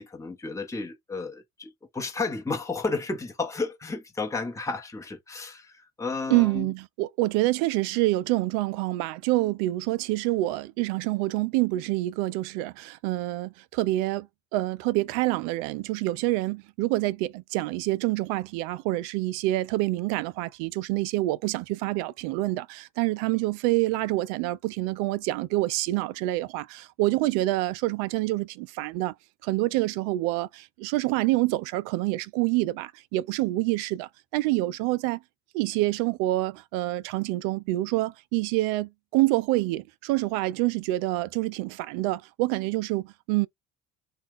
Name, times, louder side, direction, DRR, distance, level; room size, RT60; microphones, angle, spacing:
voice 1, 0.0-6.7, left 3 dB, 10° left, 0.9 m, -32 dB
voice 2, 6.3-14.3 14.5-29.1 29.4-35.2 35.5-43.5, right 18 dB, 65° right, 0.5 m, -27 dB
2.3 x 2.2 x 3.7 m
hypercardioid pair, 70°, 34 cm